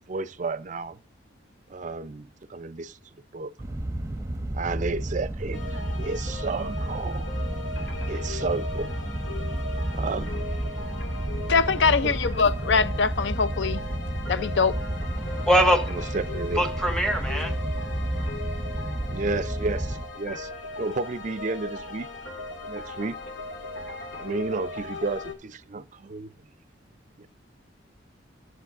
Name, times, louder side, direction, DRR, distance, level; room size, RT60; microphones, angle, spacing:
voice 1, 0.1-1.0 1.7-3.0 3.3-3.5 4.5-7.3 8.1-8.9 9.9-10.4 12.0-12.2 15.9-16.6 19.1-20.5 20.8-22.1 22.7-23.2 24.1-26.3 27.2-27.3, right 3 dB, 40° right, 0.5 m, -32 dB
sound 1, 3.6-20.0, right 1 dB, 15° right, 0.8 m, -31 dB
sound 2, 5.5-25.3, left 2 dB, 85° left, 2.0 m, -38 dB
voice 2, 11.5-13.8 14.3-14.8, left 5 dB, 70° left, 0.5 m, -23 dB
voice 3, 15.2-16.0 16.5-17.5, equal, 5° left, 1.4 m, -23 dB
13.5 x 8.0 x 2.4 m
head